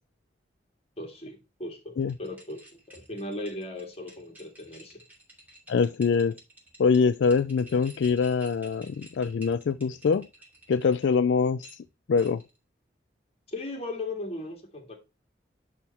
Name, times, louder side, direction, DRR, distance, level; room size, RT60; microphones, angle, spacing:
voice 1, 1.0-2.6 2.9-5.0 13.5-15.0, left 2 dB, 35° left, 2.2 m, -37 dB
sound 1, 2.0-11.2 11.6-12.6, right 1 dB, 10° right, 2.7 m, -52 dB
voice 2, 5.7-6.4 6.8-10.3 10.7-11.7 12.1-12.4, left 5 dB, 75° left, 0.4 m, -24 dB
10.5 x 3.6 x 4.3 m
head